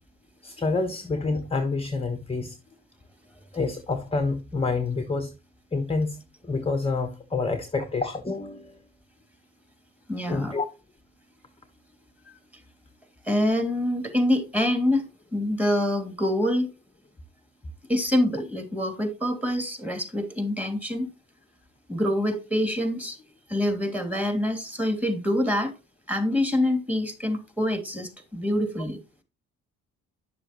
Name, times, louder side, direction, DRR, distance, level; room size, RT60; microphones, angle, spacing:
voice 1, 0.4-2.6 3.5-5.3 5.7-6.2 6.4-8.8 10.3-10.6, left 3 dB, 15° left, 1.2 m, -28 dB
voice 2, 10.1-10.5 13.2-15.0 15.3-16.7 17.9-21.1 21.9-23.2 23.5-25.7 26.1-29.0, left 1 dB, 5° right, 2.8 m, -25 dB
10.5 x 6.9 x 3.0 m
hypercardioid pair, 55°, 38 cm